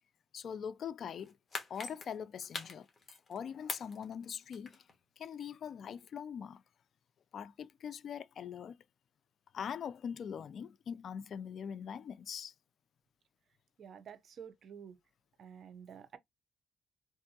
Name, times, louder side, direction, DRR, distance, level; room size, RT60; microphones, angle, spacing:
voice 1, 0.3-1.4 1.7-2.9 3.3-4.9 5.2-6.6 7.3-8.8 9.5-12.5, left 7 dB, 60° left, 0.3 m, -42 dB
sound 1, 1.2-3.4 3.7-5.0 5.3-5.4, left 3 dB, 35° left, 1.1 m, -43 dB
voice 2, 13.8-15.0 15.4-16.2, right 7 dB, 60° right, 0.6 m, -50 dB
3.4 x 2.6 x 2.7 m
cardioid pair, 90°, 0 cm